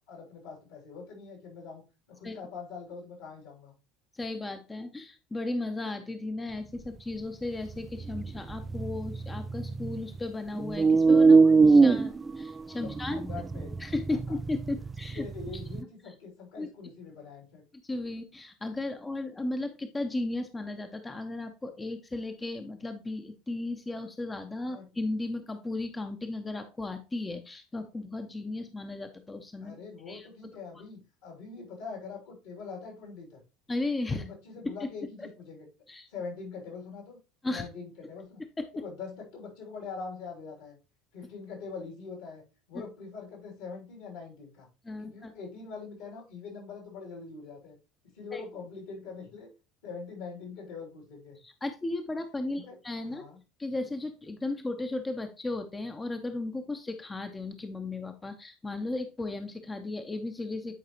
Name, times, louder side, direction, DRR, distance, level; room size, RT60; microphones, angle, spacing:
voice 1, 0.0-1.8 2.1-3.7 12.8-13.7 14.1-14.4 15.1-17.6 24.6-24.9 29.6-33.4 34.1-35.7 36.1-37.2 37.5-38.4 38.7-40.8 41.1-42.4 42.7-44.7 45.0-47.8 48.1-49.5 49.8-51.4 52.5-52.8 53.0-53.4, left 5 dB, 65° left, 0 dB, 3.2 m, -43 dB
voice 2, 4.1-13.2 13.8-15.2 16.6-16.7 17.8-29.8 30.1-30.3 33.7-34.2 34.6-34.7 35.9-36.1 37.4-37.6 38.6-38.7 44.8-45.3 48.3-48.4 51.4-53.2 53.6-60.8, left 2 dB, 20° left, 7 dB, 0.8 m, -35 dB
sound 1, 7.6-10.2 10.6-15.8, right 4 dB, 20° right, 0.3 m, -23 dB
9.3 x 4.8 x 3.0 m, 0.30 s
figure-of-eight pair, 65°, 0 cm